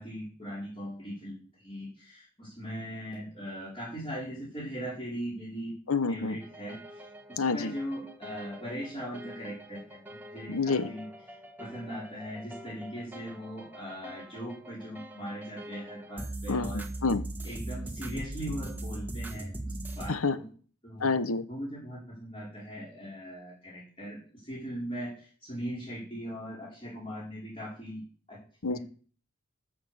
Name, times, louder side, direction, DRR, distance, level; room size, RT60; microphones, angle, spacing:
voice 1, 0.0-5.7 6.1-11.1 11.6-16.9 17.4-20.5 20.8-21.1 21.5-28.0 28.3-28.4 28.7-28.8, equal, 25° left, -7 dB, 4.9 m, -40 dB
voice 2, 5.9-6.4 7.4-7.7 10.5-10.9 16.5-17.3 20.1-20.4 21.0-21.4 28.6-28.8, left 4 dB, 90° left, 13 dB, 1.0 m, -28 dB
sound 1, 6.4-20.1, right 1 dB, 10° right, 1.4 m, -41 dB
13.5 x 6.5 x 7.9 m, 0.42 s
head